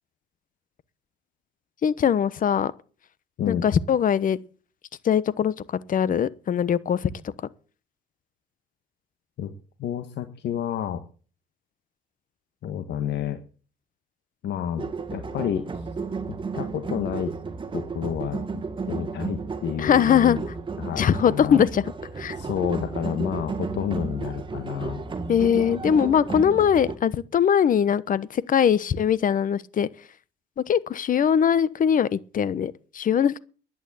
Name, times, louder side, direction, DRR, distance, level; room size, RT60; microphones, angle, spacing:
voice 1, 1.8-2.7 3.5-4.4 5.0-7.3 19.8-20.4 21.0-21.8 22.2-22.4 25.3-29.9 30.7-33.4, left 8 dB, 45° left, 1.1 m, -21 dB
voice 2, 9.8-11.0 12.6-13.4 14.4-15.9 16.3-17.3 17.7-20.4 20.8-21.6 22.4-25.0, left 9 dB, 65° left, 1.5 m, -30 dB
sound 1, 14.8-27.0, right 4 dB, 25° right, 1.7 m, -33 dB
11.5 x 9.2 x 8.9 m
cardioid pair, 105°, 19 cm